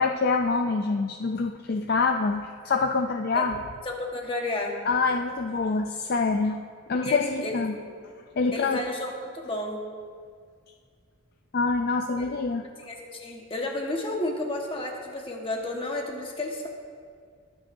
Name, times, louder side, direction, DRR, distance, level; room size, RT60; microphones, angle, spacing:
voice 1, 0.0-3.6 4.9-6.6 6.9-7.8 8.4-8.8 11.5-12.7, left 4 dB, 50° left, 5 dB, 0.4 m, -25 dB
voice 2, 3.8-4.8 6.9-7.5 7.8-7.9 8.5-9.8 12.2-12.3 12.8-16.7, left 2 dB, 25° left, 0 dB, 1.4 m, -32 dB
21.0 x 8.7 x 2.7 m, 2.1 s
head